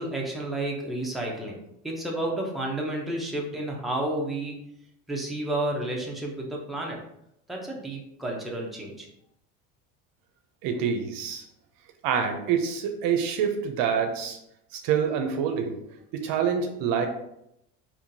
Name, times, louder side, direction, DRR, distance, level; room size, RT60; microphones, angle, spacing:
voice 1, 0.0-1.5 1.8-4.6 5.1-7.0 7.5-9.1, right 1 dB, ahead, -2 dB, 0.7 m, -31 dB
voice 2, 10.6-11.4 12.0-14.4 14.7-15.8 16.1-17.1, right 7 dB, 65° right, 5 dB, 0.6 m, -26 dB
3.6 x 2.7 x 2.7 m, 0.79 s
supercardioid pair, 90°, 38 cm